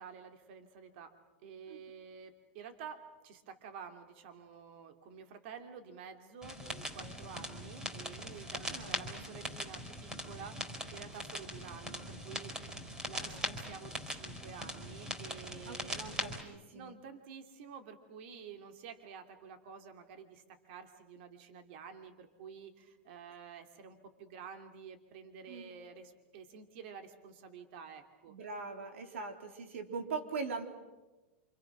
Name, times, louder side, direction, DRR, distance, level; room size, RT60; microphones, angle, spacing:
voice 1, 0.0-12.7 13.1-16.0 16.7-28.4, right 6 dB, 60° right, 6 dB, 2.8 m, -50 dB
sound 1, 6.4-16.4, equal, 10° right, 4.4 m, -41 dB
voice 2, 8.3-9.0 13.1-13.5 15.6-17.0 25.5-25.7 28.3-30.6, right 4 dB, 80° right, 5 dB, 3.6 m, -42 dB
27.5 x 26.0 x 6.2 m, 1.1 s
hypercardioid pair, 125°, 7 cm